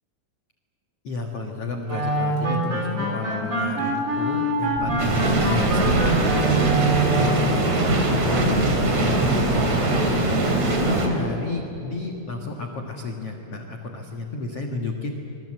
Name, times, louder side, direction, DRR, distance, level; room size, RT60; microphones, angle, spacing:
voice 1, 1.0-7.6 7.9-15.1, left 3 dB, 80° left, 1 dB, 1.3 m, -32 dB
sound 1, 1.9-7.4, right 2 dB, 20° right, 3.4 m, -25 dB
sound 2, 4.6-5.6 5.9-6.9 7.4-7.5 8.0-10.1, right 3 dB, 65° right, 4.6 m, -30 dB
sound 3, 5.0-11.1, right 2 dB, 40° right, 3.7 m, -21 dB
26.0 x 22.5 x 7.8 m, 2.9 s
omnidirectional pair, 5.4 m